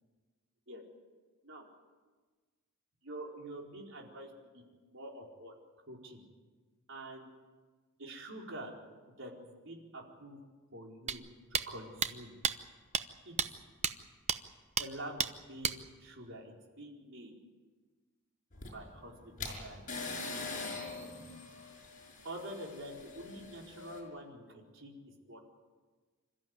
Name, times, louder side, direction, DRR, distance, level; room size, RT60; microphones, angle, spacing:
voice 1, 3.0-4.6 4.9-5.5 5.9-6.2 6.9-7.3 8.0-8.7 9.2-10.4 10.7-11.2 11.7-12.3 13.2-13.6 14.8-17.3 18.7-19.1 19.4-19.8 20.3-20.6 22.2-24.9 25.3-25.4, right 1 dB, 60° right, 0 dB, 4.5 m, -46 dB
sound 1, 11.1-11.2 11.5-11.7 12.0-12.1 12.4-12.5 12.9-13.0 13.4-13.5 13.8-13.9 14.3-14.4 14.8-14.9 15.2-15.3 15.6-15.8, right 7 dB, 30° right, 0.8 m, -30 dB
sound 2, 18.5-24.0, left 3 dB, 40° left, 5.6 m, -43 dB
27.5 x 14.0 x 9.8 m, 1.4 s
head